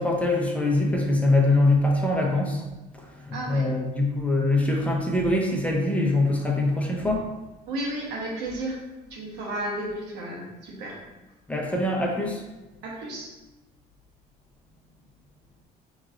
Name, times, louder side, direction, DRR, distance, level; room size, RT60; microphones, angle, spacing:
voice 1, 0.0-2.6 2.9-7.3 11.5-12.4, left 2 dB, 10° left, -1 dB, 0.7 m, -23 dB
voice 2, 3.3-3.6 7.7-8.8 9.1-11.0 12.8-13.3, right 1 dB, 90° right, -2 dB, 1.1 m, -33 dB
5.9 x 3.1 x 2.5 m, 1.1 s
cardioid pair, 110°, 17 cm